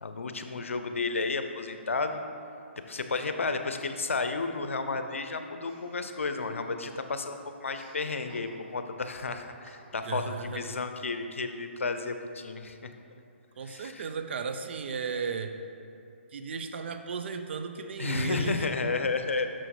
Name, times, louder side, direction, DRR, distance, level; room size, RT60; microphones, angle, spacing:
voice 1, 0.0-2.2 2.9-12.9 13.6-14.1 18.0-19.5, left 4 dB, 80° left, 7 dB, 0.6 m, -32 dB
Chuckle chortle, 5.6-7.0 7.3-8.9 9.6-10.2, equal, 10° right, 1.3 m, -55 dB
voice 2, 10.1-10.6 13.6-15.5 16.3-18.7, right 5 dB, 60° right, 7 dB, 0.6 m, -35 dB
6.2 x 6.2 x 4.7 m, 2.7 s
hypercardioid pair, 140°, 7 cm